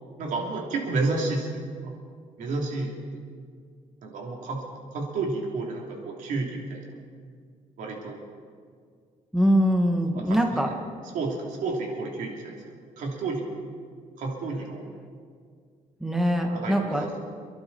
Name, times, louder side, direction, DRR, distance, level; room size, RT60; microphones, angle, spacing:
voice 1, 0.2-1.6 2.4-2.9 4.0-4.6 4.9-6.9 7.8-8.2 10.3-10.7 11.1-12.6 13.0-13.4 14.2-14.9 16.5-17.2, right 3 dB, 70° right, -1 dB, 3.3 m, -30 dB
voice 2, 9.3-10.7 16.0-17.1, equal, 5° right, 2 dB, 1.2 m, -23 dB
28.0 x 11.5 x 4.3 m, 2.1 s
cardioid pair, 145°, 14 cm